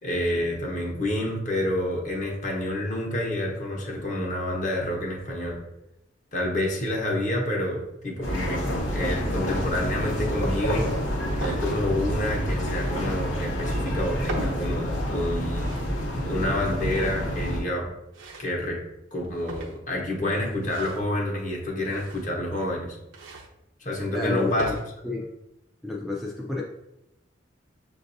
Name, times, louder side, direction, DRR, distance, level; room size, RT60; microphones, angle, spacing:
voice 1, 0.0-5.6 6.3-10.9 11.4-15.8 16.3-17.9 18.4-18.8 19.1-23.0 23.8-24.7, left 1 dB, 40° left, -1 dB, 1.0 m, -28 dB
sound 1, 8.2-17.6, equal, 80° left, 0.9 m, -28 dB
sound 2, 10.0-10.2 10.9-11.6 12.6-13.2 14.0-14.6 15.3-15.9 16.8-17.4 18.1-18.6 19.2-19.9 20.5-21.1 21.8-22.5 23.1-23.5 24.3-24.8, right 3 dB, 85° right, 0.7 m, -40 dB
voice 2, 24.1-24.7 25.0-25.3 25.8-26.6, left 3 dB, ahead, -4 dB, 0.4 m, -30 dB
6.6 x 2.6 x 2.6 m, 0.87 s
head